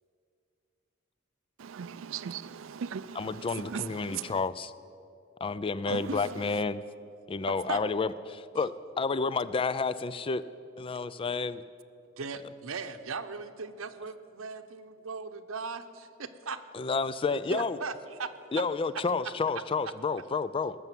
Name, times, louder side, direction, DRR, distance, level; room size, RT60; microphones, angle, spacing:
voice 1, 1.6-4.4 5.9-6.6, right 7 dB, 70° right, 0.4 m, -39 dB
voice 2, 3.2-4.7 5.4-6.8 7.3-10.4 10.8-11.6 16.7-17.8 18.5-20.8, left 4 dB, 25° left, 0.3 m, -30 dB
voice 3, 5.9-6.2 7.5-7.8 12.2-16.6 17.3-18.6, right 4 dB, 85° right, 0.9 m, -38 dB
19.5 x 6.9 x 9.1 m
head